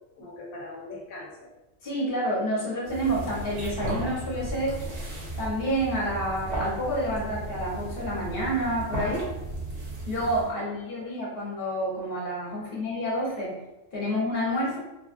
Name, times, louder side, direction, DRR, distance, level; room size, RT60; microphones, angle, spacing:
voice 1, 0.2-1.5 5.3-5.4 8.6-8.7 10.6-10.7 11.0-11.4 12.6-12.7, left 2 dB, 85° left, -3 dB, 1.1 m, -43 dB
voice 2, 1.8-4.8 5.4-9.2 10.1-13.5 13.9-14.8, equal, 45° left, -5 dB, 1.1 m, -29 dB
sound 1, 2.8-10.5, right 2 dB, 55° right, 1.1 m, -35 dB
3.4 x 2.3 x 2.5 m, 0.98 s
omnidirectional pair, 1.4 m